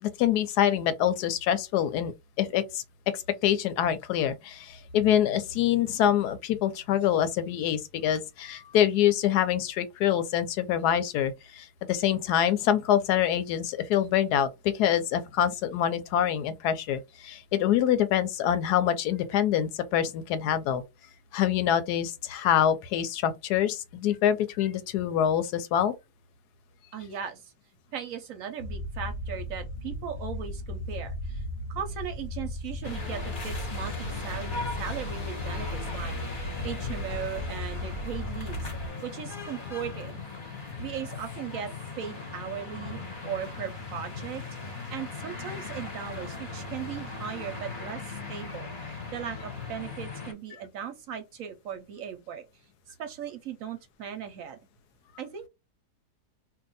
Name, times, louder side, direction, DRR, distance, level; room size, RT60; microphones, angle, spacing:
voice 1, 0.0-2.1 2.4-2.8 3.1-20.8 21.3-25.9, left 10 dB, 80° left, 1.1 m, -25 dB
voice 2, 26.9-27.5 27.9-31.4 31.7-38.7 39.0-40.2 40.8-41.7 42.0-52.4 52.9-54.6 55.2-55.5, right 8 dB, 65° right, 0.9 m, -38 dB
sound 1, 28.6-38.9, left 1 dB, 60° left, 0.5 m, -36 dB
sound 2, 32.8-50.3, left 4 dB, 40° left, 0.9 m, -38 dB
2.7 x 2.3 x 3.9 m
omnidirectional pair, 1.7 m